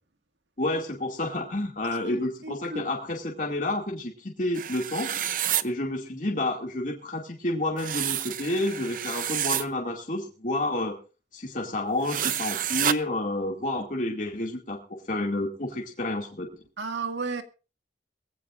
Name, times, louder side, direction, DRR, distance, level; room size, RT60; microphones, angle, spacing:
voice 1, 0.6-5.1 5.6-11.0 11.3-16.6, left 1 dB, 45° left, 2.4 m, -30 dB
voice 2, 2.1-2.9 16.8-17.4, right 4 dB, 85° right, 1.9 m, -33 dB
sound 1, 4.6-5.6 7.8-9.7 12.0-13.0, right 10 dB, 45° right, 0.7 m, -29 dB
22.0 x 16.0 x 2.6 m
head